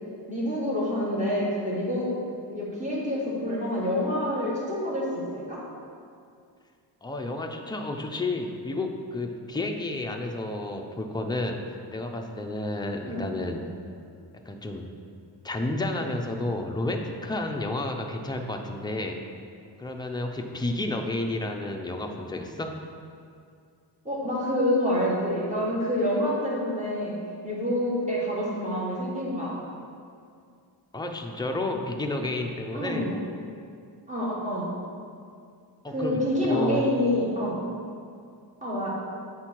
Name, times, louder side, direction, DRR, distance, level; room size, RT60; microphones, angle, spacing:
voice 1, 0.3-2.1 2.5-5.6 13.0-13.2 24.0-27.1 27.4-29.6 32.7-33.1 34.1-34.8 35.9-37.6 38.6-38.9, left 1 dB, 15° right, -6 dB, 1.6 m, -27 dB
voice 2, 7.0-13.6 14.5-14.9 15.4-19.2 19.8-22.8 30.9-33.1 35.8-36.9, left 2 dB, 10° left, 2 dB, 0.4 m, -31 dB
7.3 x 4.4 x 4.5 m, 2.3 s
wide cardioid pair, 140°, 43 cm